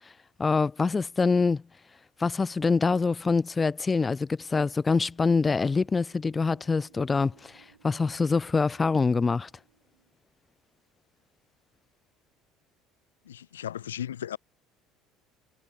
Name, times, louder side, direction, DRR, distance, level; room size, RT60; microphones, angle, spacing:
voice 1, 0.4-1.6 2.2-9.5, left 4 dB, 25° left, 0.3 m, -25 dB
sound 1, 4.2-10.2, right 8 dB, 85° right, 5.3 m, -62 dB
voice 2, 13.2-14.4, left 10 dB, 80° left, 1.6 m, -36 dB
figure-of-eight pair, 60°, 0 cm